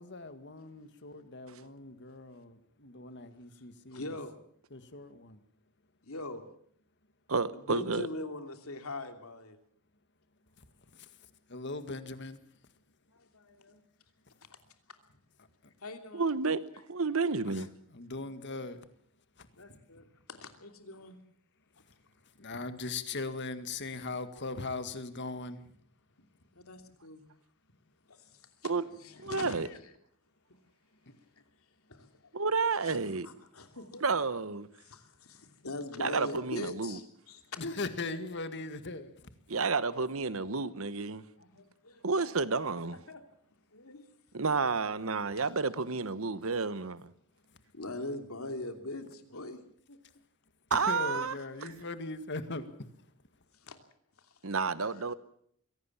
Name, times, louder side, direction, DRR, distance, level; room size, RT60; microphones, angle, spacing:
voice 1, 0.0-4.3 4.7-5.4 10.6-12.4 15.4-15.7 17.5-18.8 19.4-19.5 21.8-21.9 22.2-25.6 29.2-29.5 31.1-31.2 37.5-39.3 47.5-47.6 50.7-53.1, left 3 dB, 55° left, 1.9 m, -40 dB
voice 2, 3.9-4.3 6.0-6.4 7.5-9.6 13.1-13.8 15.8-16.3 19.6-21.2 26.5-27.2 28.1-29.8 31.4-31.5 31.9-32.3 32.8-34.1 34.8-37.7 40.6-41.1 41.4-42.5 42.9-43.2 43.7-44.1 45.3-45.6 47.7-49.6 49.9-50.0 53.6-53.8 54.2-54.3 54.9-55.0, left 2 dB, 75° left, 3.0 m, -42 dB
voice 3, 7.3-8.1 16.1-16.6 16.9-17.7 28.6-28.9 29.2-29.7 32.3-33.3 34.0-34.7 36.0-37.0 39.5-41.2 42.0-43.0 44.3-47.0 50.7-51.3 54.4-55.1, right 4 dB, 65° right, 1.1 m, -30 dB
23.5 x 17.5 x 7.3 m
head